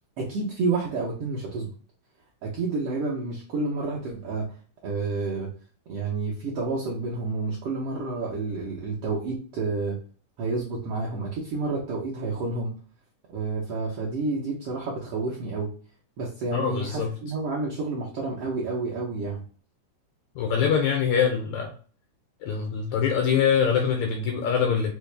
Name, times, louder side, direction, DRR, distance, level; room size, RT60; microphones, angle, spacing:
voice 1, 0.2-1.7 2.4-4.5 4.8-5.5 5.9-10.0 10.4-12.8 13.3-15.7 16.2-19.4, right 3 dB, 75° right, -4 dB, 1.4 m, -29 dB
voice 2, 16.5-17.1 20.4-21.7 22.4-24.9, left 7 dB, 80° left, 3 dB, 1.6 m, -24 dB
5.4 x 2.1 x 3.2 m, 0.41 s
omnidirectional pair, 3.7 m